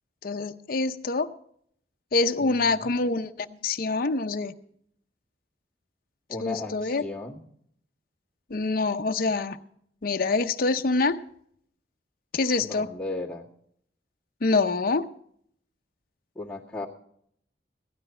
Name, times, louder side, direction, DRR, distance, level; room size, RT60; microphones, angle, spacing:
voice 1, 0.2-1.3 2.1-4.5 6.4-7.0 8.5-9.6 10.0-11.2 12.3-12.9 14.4-15.1, left 3 dB, 55° left, 8 dB, 0.6 m, -25 dB
voice 2, 2.4-2.9 6.3-7.4 12.6-13.5 16.4-16.9, left 2 dB, 5° left, -6 dB, 1.9 m, -36 dB
16.0 x 12.5 x 4.3 m, 0.67 s
head